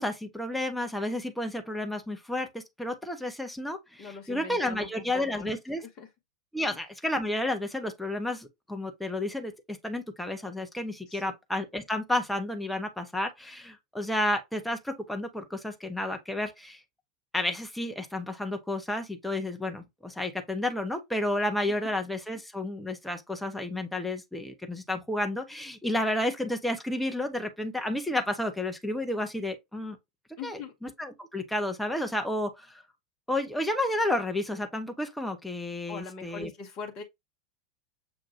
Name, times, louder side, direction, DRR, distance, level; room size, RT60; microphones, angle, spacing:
voice 1, 0.0-5.8 6.5-16.8 17.3-30.0 30.4-32.8 33.3-36.5, left 1 dB, 5° left, 1.0 m, -31 dB
voice 2, 4.0-4.9 5.1-6.1 6.6-6.8 11.1-11.3 21.8-21.9 30.4-30.7 35.9-37.0, left 5 dB, 35° left, 1.0 m, -42 dB
7.0 x 2.5 x 2.8 m
figure-of-eight pair, 85°, 3 cm